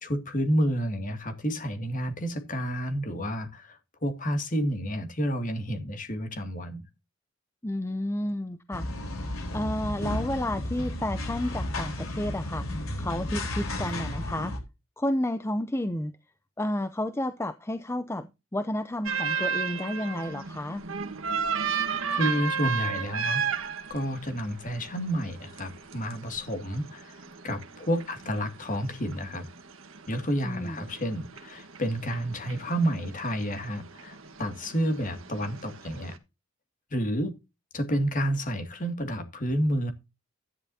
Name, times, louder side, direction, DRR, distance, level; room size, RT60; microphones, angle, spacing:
voice 1, 0.0-6.8 22.1-23.5 23.9-29.5 30.1-36.2 36.9-37.3 37.7-39.9, equal, 40° left, 2.2 m, -30 dB
voice 2, 7.6-8.9 9.2-14.5 15.0-16.1 16.6-20.8 30.4-30.9, left 1 dB, 10° left, 0.6 m, -31 dB
sound 1, 8.7-14.6, left 1 dB, 75° left, 3.9 m, -33 dB
sound 2, 19.0-36.1, right 5 dB, 65° right, 1.4 m, -34 dB
13.0 x 10.5 x 2.7 m
head